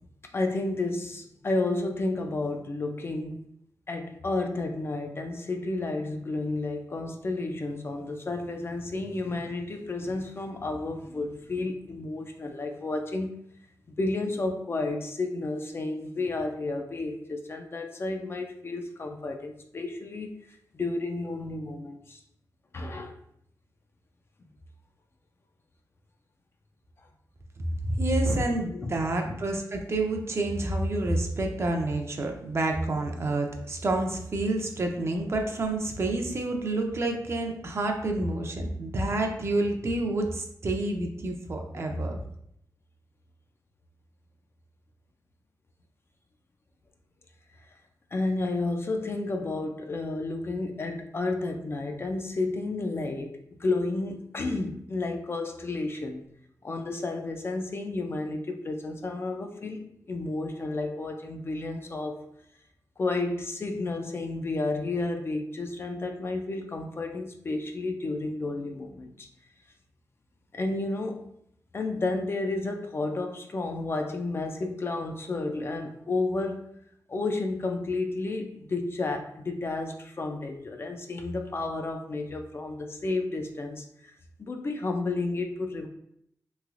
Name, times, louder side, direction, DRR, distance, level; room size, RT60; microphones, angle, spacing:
voice 1, 0.3-3.4 3.9-13.5 13.9-22.2 22.7-23.2 28.3-28.5 28.7-28.9 29.2-29.4 41.7-42.1 47.6-47.7 48.1-56.3 56.6-62.3 63.0-69.3 70.5-71.2 71.7-76.7 77.1-84.1 84.4-85.9, left 2 dB, 35° left, 4 dB, 0.4 m, -31 dB
voice 2, 27.6-42.2, right 2 dB, 40° right, 3 dB, 0.5 m, -28 dB
3.1 x 2.9 x 2.4 m, 0.73 s
cardioid pair, 95°, 7 cm